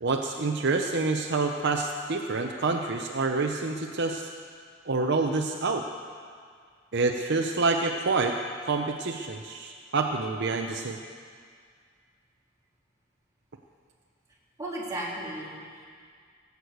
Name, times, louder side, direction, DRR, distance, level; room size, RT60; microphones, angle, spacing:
voice 1, 0.0-4.3 4.9-5.8 6.9-8.4 8.7-11.0, right 3 dB, 60° right, 3 dB, 0.7 m, -27 dB
voice 2, 14.6-15.8, right 1 dB, 15° right, -6 dB, 3.3 m, -35 dB
17.5 x 8.2 x 8.0 m, 2.1 s
head